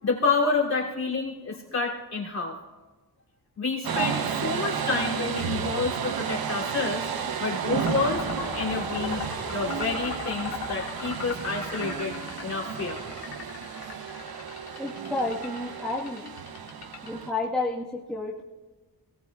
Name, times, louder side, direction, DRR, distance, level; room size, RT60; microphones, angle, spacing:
voice 1, 0.0-2.6 3.6-7.1 7.4-8.3 8.5-9.2 9.5-13.0, left 4 dB, 45° left, -4 dB, 3.0 m, -29 dB
sound 1, 3.8-17.3, right 7 dB, 65° right, 0.9 m, -32 dB
sound 2, 7.7-17.4, left 5 dB, 75° left, 2.1 m, -38 dB
voice 2, 14.8-16.3 17.0-18.4, left 2 dB, ahead, -6 dB, 1.5 m, -31 dB
22.0 x 18.5 x 2.4 m, 1.2 s
wide cardioid pair, 120°, 39 cm